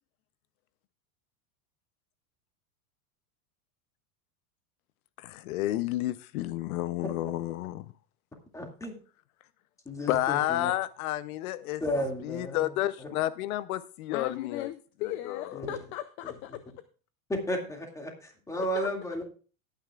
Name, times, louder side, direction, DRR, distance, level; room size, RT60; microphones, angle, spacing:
voice 1, 5.2-7.9 10.1-11.8 12.2-14.7 15.2-15.4, left 15 dB, 70° left, 15 dB, 0.7 m, -31 dB
voice 2, 8.5-9.0 9.9-10.7 11.8-12.7 13.0-13.1 15.5-15.7 16.2-16.3 17.3-19.2, equal, 5° left, 3 dB, 2.2 m, -33 dB
voice 3, 14.1-16.6 18.5-18.9, left 13 dB, 30° left, 12 dB, 0.4 m, -37 dB
18.0 x 9.3 x 2.4 m, 0.37 s
supercardioid pair, 150°, 44 cm